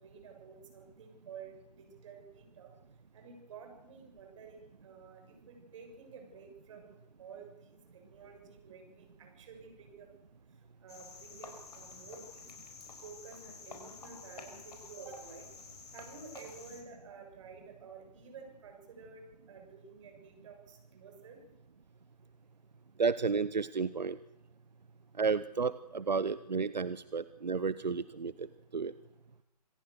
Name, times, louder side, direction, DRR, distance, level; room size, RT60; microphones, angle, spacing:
voice 1, 0.0-10.1 10.5-12.6 13.0-15.5 15.9-21.4, right 5 dB, 45° right, 4 dB, 7.1 m, -52 dB
Cricket, 10.9-16.8, left 4 dB, 65° left, 5.1 m, -50 dB
voice 2, 23.0-24.2 25.2-28.5 28.7-28.9, right 5 dB, 90° right, 16 dB, 0.7 m, -32 dB
26.0 x 17.0 x 6.7 m, 0.91 s
figure-of-eight pair, 135°, 21 cm